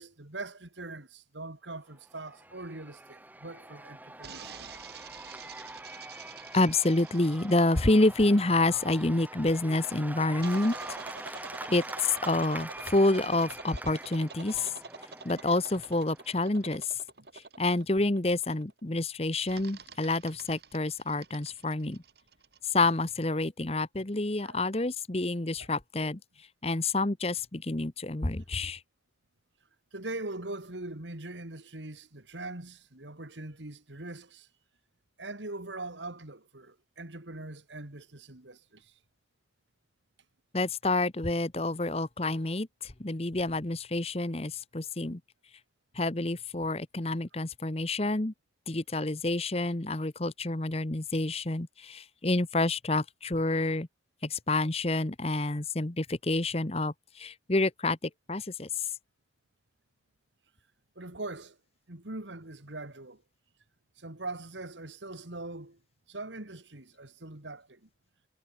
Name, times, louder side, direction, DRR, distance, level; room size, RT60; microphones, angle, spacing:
voice 1, 0.0-4.6 17.2-17.3 24.4-24.6 25.6-25.7 29.9-34.5 35.2-38.9 61.0-61.6 61.9-63.2 64.0-65.8 66.1-67.9, right 2 dB, 85° right, 2.9 m, -42 dB
Cheering / Applause / Crowd, 2.0-16.7, right 1 dB, 10° right, 3.4 m, -44 dB
sound 1, 4.2-9.1 10.4-18.8 19.5-22.7, right 4 dB, 60° right, 4.1 m, -47 dB
voice 2, 6.5-10.7 11.7-14.7 15.2-17.0 17.6-22.0 22.7-26.2 26.6-28.8 40.5-45.2 45.9-48.3 48.7-53.9 54.2-58.9, left 2 dB, 35° left, 1.1 m, -28 dB
head